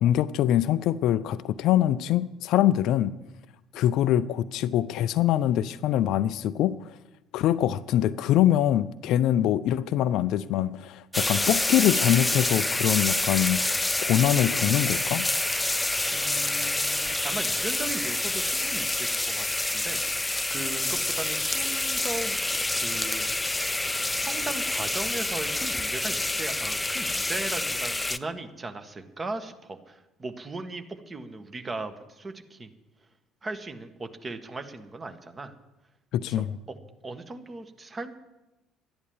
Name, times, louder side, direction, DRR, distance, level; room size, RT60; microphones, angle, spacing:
voice 1, 0.0-3.1 3.7-6.7 7.3-13.6 14.0-15.3 36.1-36.6, left 12 dB, 55° left, 16 dB, 0.4 m, -24 dB
sound 1, 11.1-28.2, left 2 dB, 10° left, 0.6 m, -27 dB
voice 2, 16.1-19.5 19.7-23.4 24.1-32.7 33.4-35.5 36.3-36.4 37.0-38.1, right 3 dB, 25° right, 8 dB, 1.6 m, -38 dB
12.0 x 10.5 x 7.3 m, 1.0 s
figure-of-eight pair, 55°, 0 cm